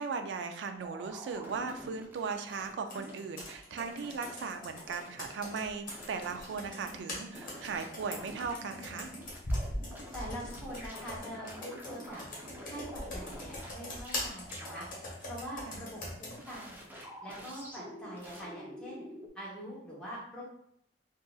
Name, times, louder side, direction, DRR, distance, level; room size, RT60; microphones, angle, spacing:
voice 1, 0.0-9.1 15.7-15.8, right 5 dB, 75° right, 6 dB, 0.3 m, -38 dB
sound 1, 0.8-3.1 3.4-4.5 4.8-5.5 5.9-10.2 10.4-13.7 14.0-14.2 14.5-14.8 16.4-19.3, equal, 10° right, 0.5 m, -48 dB
Computer keyboard, 2.9-16.4, left 1 dB, 50° left, 1.2 m, -42 dB
voice 2, 10.1-16.8 17.2-19.0 19.3-20.4, equal, 5° left, -8 dB, 1.0 m, -44 dB
3.8 x 2.5 x 2.3 m, 0.71 s
head